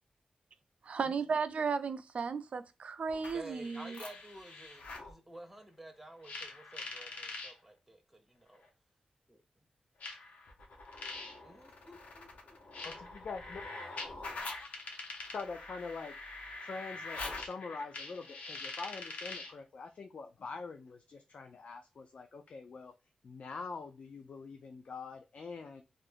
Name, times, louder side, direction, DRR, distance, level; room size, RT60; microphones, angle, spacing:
voice 1, 0.8-4.0, right 5 dB, 65° right, 0.4 m, -35 dB
sound 1, 3.1-5.1 6.2-7.5 8.6-8.7 10.0-19.6, left 3 dB, 85° left, 0.9 m, -44 dB
voice 2, 3.3-8.6 9.3-9.4 11.4-12.6, right 1 dB, 5° right, 0.5 m, -52 dB
voice 3, 12.8-14.1 14.5-14.6 15.3-16.1 16.6-22.9 23.2-25.8, left 4 dB, 65° left, 0.4 m, -44 dB
2.6 x 2.5 x 3.4 m
wide cardioid pair, 100°, 2 cm